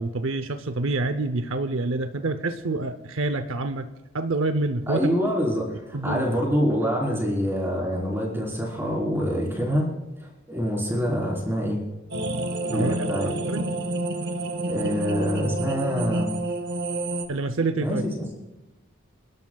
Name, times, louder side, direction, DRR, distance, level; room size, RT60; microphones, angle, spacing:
voice 1, 0.0-3.9 4.1-5.1 5.9-6.2 12.7-13.7 17.3-18.0, right 2 dB, 80° right, 10 dB, 0.7 m, -27 dB
voice 2, 4.9-9.9 10.2-11.8 12.7-13.3 14.7-16.3 17.8-18.3, equal, 10° right, -3 dB, 3.9 m, -26 dB
sound 1, 12.1-17.3, right 2 dB, 55° right, 1.0 m, -29 dB
28.5 x 11.5 x 2.3 m, 1.1 s
head